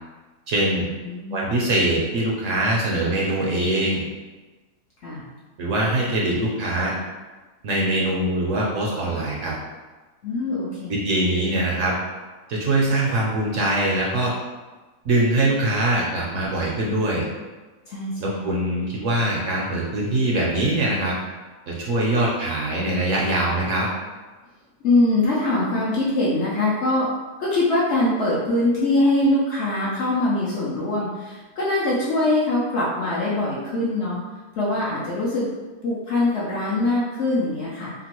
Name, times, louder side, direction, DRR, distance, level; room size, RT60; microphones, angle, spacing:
voice 1, 0.5-0.8 1.3-4.0 5.6-6.9 7.6-9.5 10.9-11.9 12.5-14.3 15.0-17.2 18.2-21.1 21.7-23.9, right 1 dB, 65° right, -4 dB, 0.8 m, -22 dB
voice 2, 1.0-1.5 5.0-5.3 10.2-11.0 17.9-18.5 24.8-27.1 27.4-34.2 34.6-35.5 35.8-37.9, left 2 dB, 65° left, -7 dB, 0.7 m, -23 dB
2.9 x 2.5 x 2.9 m, 1.2 s
omnidirectional pair, 1.6 m